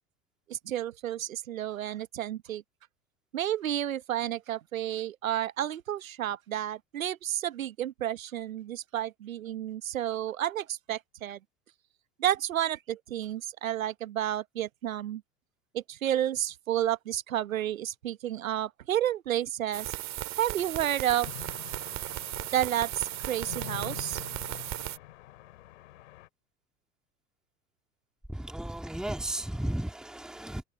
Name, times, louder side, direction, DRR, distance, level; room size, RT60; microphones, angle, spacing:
voice 1, 0.5-2.6 3.3-11.4 12.2-15.2 15.7-20.0 20.4-21.3 22.5-24.2, right 11 dB, 85° right, 1.0 m, -31 dB
sound 1, 19.7-25.0, right 15 dB, 45° right, 2.0 m, -36 dB
sound 2, 21.2-26.3, left 15 dB, 70° left, 3.9 m, -45 dB
voice 2, 28.3-30.6, right 1 dB, ahead, 2.0 m, -34 dB
hypercardioid pair, 85°, 40 cm